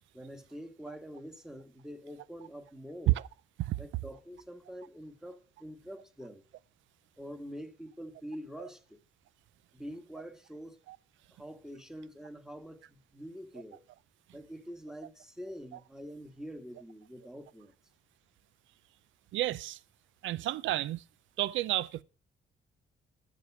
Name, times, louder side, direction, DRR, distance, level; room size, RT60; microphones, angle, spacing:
voice 1, 0.1-3.2 3.8-6.5 7.2-9.0 9.7-10.8 11.3-13.9 14.3-17.7, equal, ahead, 1.4 m, -45 dB
voice 2, 19.3-19.8 20.2-21.0 21.4-22.0, right 15 dB, 75° right, 0.5 m, -30 dB
10.5 x 7.4 x 6.0 m
cardioid pair, 90°, 20 cm